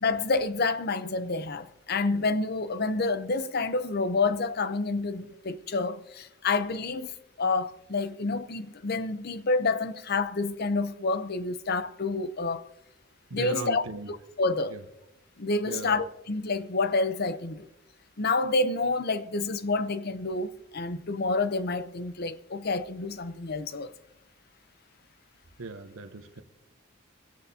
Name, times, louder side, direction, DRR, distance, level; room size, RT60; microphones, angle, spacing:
voice 1, 0.0-7.1 7.4-12.6 13.3-13.8 14.4-14.8 15.4-17.7 18.2-23.9, left 3 dB, 50° left, 0.7 m, -28 dB
voice 2, 13.3-14.1 14.7-14.8 15.7-16.0 25.6-26.4, right 3 dB, 90° right, 1.0 m, -37 dB
26.0 x 10.5 x 2.8 m
head